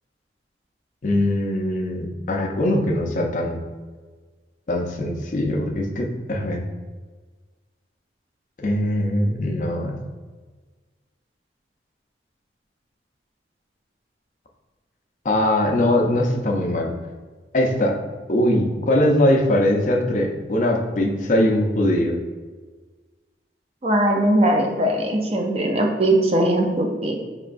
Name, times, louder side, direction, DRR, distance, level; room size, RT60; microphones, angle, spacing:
voice 1, 1.0-3.6 4.7-6.6 8.6-10.0 15.2-16.9 17.5-18.0 18.3-22.2, left 1 dB, 45° left, 1 dB, 0.4 m, -21 dB
voice 2, 23.8-27.2, right 1 dB, 35° right, 1 dB, 0.4 m, -20 dB
4.5 x 3.0 x 2.5 m, 1.4 s
head